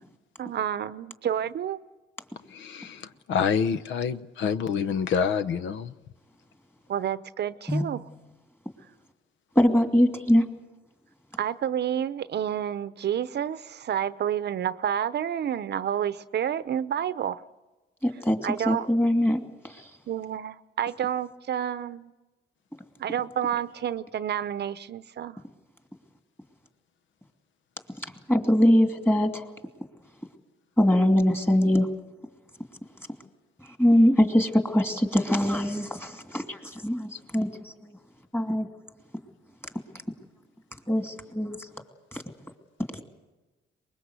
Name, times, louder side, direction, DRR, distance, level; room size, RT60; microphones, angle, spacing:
voice 1, 0.4-1.8 6.9-8.0 11.4-17.4 18.4-18.9 20.1-22.1 23.0-25.4, right 9 dB, 55° right, 14 dB, 0.8 m, -29 dB
voice 2, 2.5-5.9, left 6 dB, 70° left, 12 dB, 0.9 m, -27 dB
voice 3, 9.5-10.4 18.0-18.4 18.7-19.8 28.3-29.4 30.8-31.9 33.8-38.0 38.3-38.7 40.9-41.7 42.1-42.2, equal, 10° left, 5 dB, 2.7 m, -22 dB
23.5 x 21.5 x 8.2 m, 1.1 s
cardioid pair, 90°, 20 cm